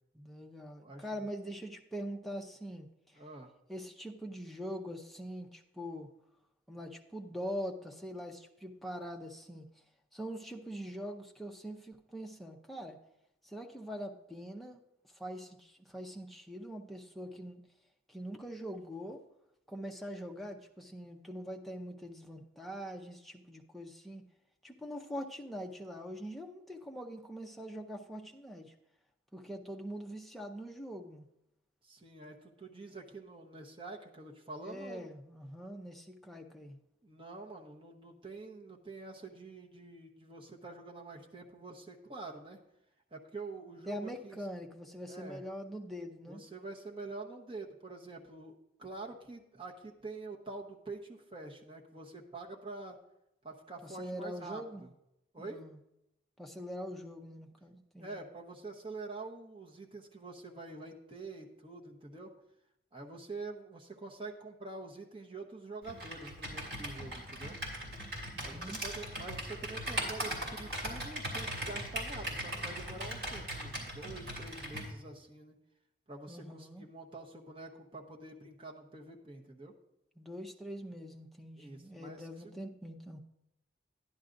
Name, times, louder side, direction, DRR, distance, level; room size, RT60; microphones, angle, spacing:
voice 1, 0.1-2.9 3.7-6.1 6.7-9.7 10.1-13.0 13.4-14.8 15.1-17.6 18.1-19.2 19.7-24.3 24.6-28.7 29.3-31.3 34.6-36.8 43.9-46.4 53.8-54.8 55.4-55.8 56.4-58.2 68.3-68.8 76.3-76.9 80.2-83.2, equal, ahead, 1 dB, 0.6 m, -43 dB
voice 2, 3.1-3.5 31.8-35.1 37.0-42.6 43.1-44.4 45.1-45.4 46.3-53.0 53.4-54.9 55.3-55.6 58.0-62.3 62.9-67.6 68.4-75.6 76.1-79.7 81.6-82.5, right 3 dB, 30° right, 0 dB, 1.0 m, -46 dB
Computer keyboard, 65.8-74.9, right 1 dB, 60° right, 2.6 m, -39 dB
11.0 x 10.5 x 2.6 m, 0.85 s
head